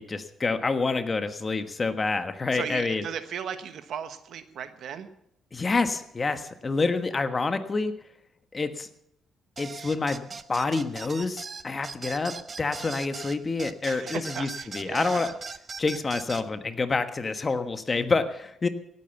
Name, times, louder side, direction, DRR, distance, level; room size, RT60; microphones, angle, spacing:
voice 1, 0.0-3.0 5.5-7.9 8.5-8.9 9.6-14.5 14.7-15.3 15.8-18.7, left 3 dB, 30° left, 9 dB, 1.3 m, -27 dB
voice 2, 2.5-5.1 13.8-15.4, right 8 dB, 70° right, 10 dB, 1.2 m, -36 dB
sound 1, 9.6-16.5, right 5 dB, 35° right, 0.7 m, -39 dB
17.0 x 8.8 x 7.1 m, 0.76 s
cardioid pair, 90°, 0 cm